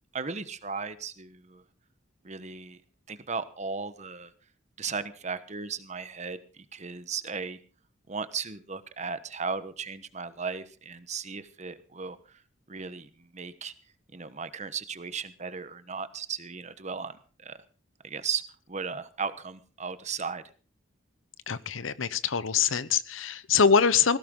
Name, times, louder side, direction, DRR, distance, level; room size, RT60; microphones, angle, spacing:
voice 1, 0.1-1.6 2.2-2.8 3.1-4.3 4.8-7.6 8.1-12.4 12.7-13.7 14.1-17.6 18.0-20.4, right 5 dB, 35° right, 12 dB, 1.1 m, -36 dB
voice 2, 21.5-24.2, left 6 dB, 85° left, 16 dB, 0.9 m, -24 dB
19.0 x 16.0 x 3.8 m, 0.39 s
head